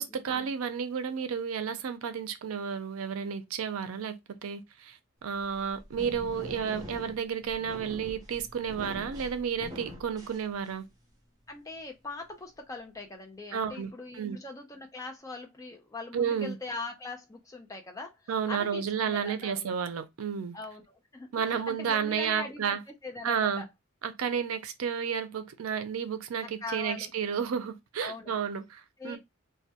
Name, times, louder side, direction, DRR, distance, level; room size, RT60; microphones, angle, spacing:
voice 1, 0.0-10.9 13.5-14.4 16.1-16.6 18.3-20.6 21.3-22.8 23.2-23.6 24.0-29.2, right 7 dB, 85° right, 0.4 m, -32 dB
sound 1, 5.3-11.0, left 1 dB, 20° right, 0.7 m, -44 dB
voice 2, 11.5-19.7 20.5-23.7 26.4-27.1 28.0-28.4 29.0-29.2, left 3 dB, 15° left, 0.5 m, -41 dB
2.2 x 2.1 x 2.7 m
head